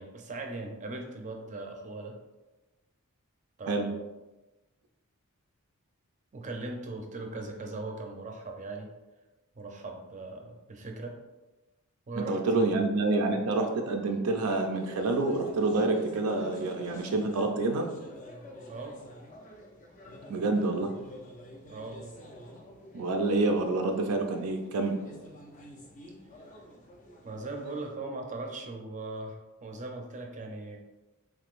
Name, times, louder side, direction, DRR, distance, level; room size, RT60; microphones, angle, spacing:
voice 1, 0.0-2.2 3.6-4.0 6.3-8.9 9.6-11.2 12.1-12.8 18.7-19.0 21.7-22.1 27.2-30.8, right 2 dB, 35° right, 2 dB, 0.5 m, -39 dB
voice 2, 12.2-17.9 20.3-20.9 22.9-24.9, right 2 dB, 85° right, 3 dB, 0.4 m, -27 dB
sound 1, 13.0-28.0, equal, 35° left, 0.6 m, -49 dB
3.6 x 3.2 x 2.4 m, 1.1 s
head